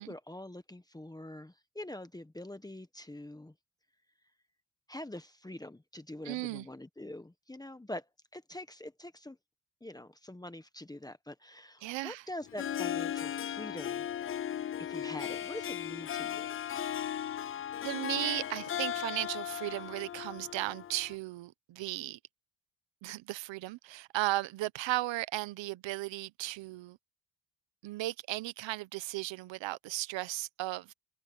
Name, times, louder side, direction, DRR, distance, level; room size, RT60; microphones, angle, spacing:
voice 1, 0.0-3.5 4.9-9.4 9.8-14.1 14.8-16.5, left 1 dB, 10° left, 1.2 m, -45 dB
voice 2, 6.2-6.7 11.8-12.2 17.8-22.2 23.0-27.0 27.8-30.9, right 17 dB, 90° right, 0.9 m, -36 dB
Harp, 12.4-21.1, left 10 dB, 30° left, 0.4 m, -37 dB
cardioid pair, 115°, 44 cm